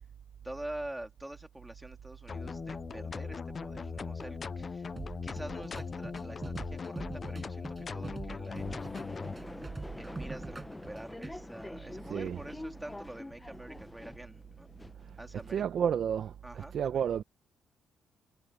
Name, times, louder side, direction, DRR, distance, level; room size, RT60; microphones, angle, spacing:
voice 1, 0.4-4.9 5.2-9.4 10.0-14.7 15.2-15.6 16.4-17.0, right 1 dB, 10° right, 3.4 m, -46 dB
sound 1, 2.3-9.4, left 5 dB, 40° left, 0.4 m, -39 dB
sound 2, 5.0-11.4, right 3 dB, 25° right, 6.4 m, -43 dB
sound 3, 8.5-15.9, left 2 dB, 15° left, 0.9 m, -46 dB
voice 2, 15.5-16.3 16.7-17.2, right 8 dB, 60° right, 0.9 m, -30 dB
cardioid pair, 90°, 0 cm